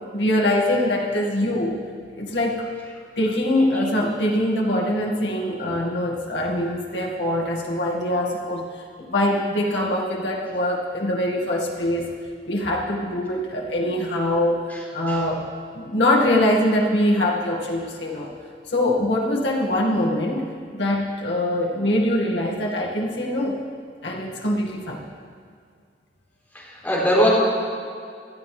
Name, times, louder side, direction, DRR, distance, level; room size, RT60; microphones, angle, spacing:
voice 1, 0.1-1.8 2.2-2.7 3.2-12.1 12.5-14.6 14.9-15.5 15.7-18.3 18.7-23.6 24.0-25.0, left 1 dB, 80° left, -2 dB, 1.9 m, -23 dB
voice 2, 26.5-27.3, equal, 10° left, -7 dB, 3.8 m, -21 dB
19.0 x 12.5 x 3.3 m, 2.2 s
head